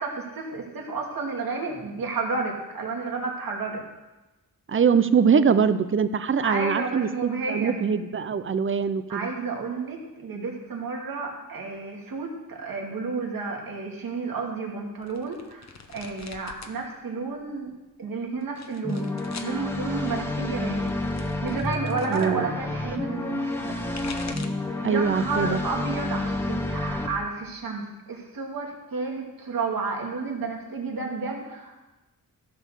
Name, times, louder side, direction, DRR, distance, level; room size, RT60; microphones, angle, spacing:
voice 1, 0.0-3.8 6.4-7.7 9.1-15.7 15.9-17.7 18.0-20.9 21.4-23.8 24.8-31.8, right 4 dB, 75° right, 0 dB, 2.5 m, -31 dB
voice 2, 4.7-7.1 7.5-9.3 22.1-22.6 24.8-25.6, right 6 dB, 35° right, 12 dB, 0.6 m, -22 dB
sound 1, 15.0-16.8 17.1-17.7 18.4-19.6 20.6-22.3 23.6-24.7 25.1-25.6 26.0-26.9, left 5 dB, 50° left, 1.0 m, -45 dB
sound 2, 18.8-27.1, left 2 dB, 5° left, 1.0 m, -30 dB
14.5 x 6.6 x 6.6 m, 1.1 s
wide cardioid pair, 155°, 35 cm